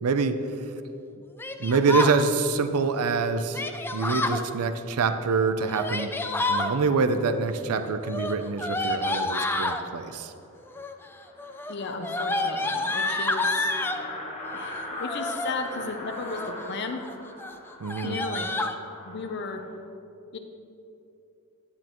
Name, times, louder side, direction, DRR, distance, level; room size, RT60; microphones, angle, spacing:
voice 1, 0.0-0.5 1.6-3.6 3.9-6.2 6.5-10.3 17.8-18.2, right 4 dB, 85° right, 10 dB, 0.5 m, -25 dB
Yell, 1.4-2.2 3.5-4.4 5.6-6.7 8.0-9.8 10.7-11.1 11.4-14.0 15.0-15.5 16.1-16.6 17.0-17.1 17.4-17.5 17.8-18.7, left 2 dB, 10° left, 0.3 m, -29 dB
sound 1, 10.3-10.4 10.7-10.8 11.0-19.8, left 1 dB, 30° left, 1.4 m, -41 dB
voice 2, 11.7-13.7 14.5-17.0 18.0-18.5 19.0-19.6 20.3-20.4, left 3 dB, 50° left, 4 dB, 0.6 m, -34 dB
9.9 x 9.7 x 3.0 m, 2.8 s
head